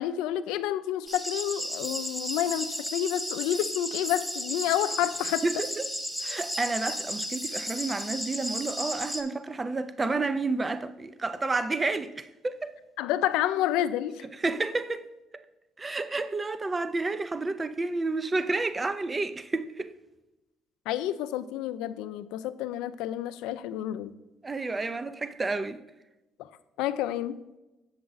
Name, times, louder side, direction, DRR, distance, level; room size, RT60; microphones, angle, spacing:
voice 1, 0.0-5.4 13.0-14.2 20.9-24.1 26.8-27.4, left 12 dB, 85° left, 0.4 m, -29 dB
sound 1, 1.1-9.2, equal, 5° right, 0.9 m, -34 dB
voice 2, 5.4-5.9 6.2-12.7 14.3-15.1 15.3-15.4 15.8-19.9 24.4-25.8, right 3 dB, 20° right, 0.4 m, -30 dB
7.5 x 7.1 x 3.9 m
cardioid pair, 110°, 0 cm